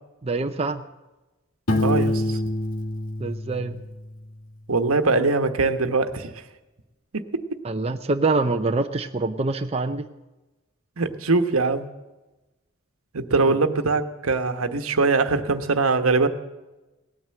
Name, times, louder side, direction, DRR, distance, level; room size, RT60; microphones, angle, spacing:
voice 1, 0.2-0.8 3.2-3.8 7.6-10.0 13.4-13.6, right 3 dB, 30° right, 6 dB, 0.6 m, -25 dB
Piano, 1.7-4.4, left 1 dB, 80° left, 2.0 m, -26 dB
voice 2, 1.8-2.4 4.7-6.3 7.3-7.6 11.0-11.9 13.1-16.3, right 3 dB, 80° right, 9 dB, 1.2 m, -22 dB
18.0 x 9.2 x 7.7 m, 1.1 s
head